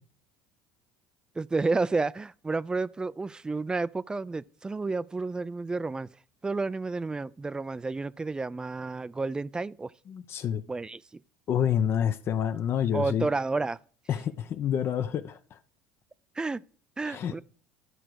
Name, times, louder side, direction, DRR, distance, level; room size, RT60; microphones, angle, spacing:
voice 1, 1.4-6.1 6.4-9.9 10.7-11.0 12.9-13.8 16.4-16.6 17.0-17.4, right 3 dB, 15° right, 0.4 m, -30 dB
voice 2, 10.1-10.6 11.5-13.3 14.1-15.6 17.0-17.4, left 9 dB, 45° left, 0.7 m, -28 dB
12.5 x 5.0 x 4.6 m
supercardioid pair, 95°, 5 cm